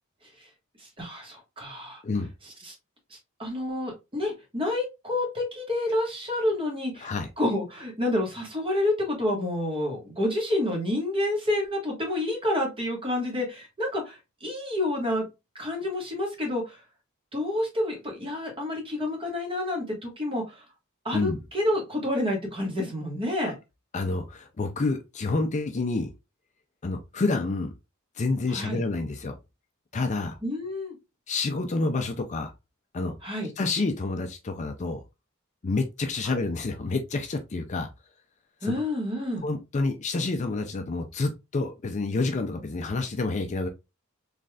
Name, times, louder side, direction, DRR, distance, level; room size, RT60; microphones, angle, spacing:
voice 1, 0.8-2.0 2.6-2.7 3.1-15.3 15.5-16.8 17.3-20.6 21.0-23.6 28.5-28.8 30.4-30.9 33.2-33.5 36.2-36.3 38.6-39.5, left 1 dB, 25° right, 1.4 m, -29 dB
voice 2, 23.9-26.1 26.8-27.7 28.2-29.3 29.9-30.4 31.3-32.5 32.9-33.1 33.6-35.0 35.6-37.9 38.6-38.7 39.4-43.7, left 3 dB, 35° left, 0.4 m, -28 dB
3.9 x 3.2 x 2.3 m
head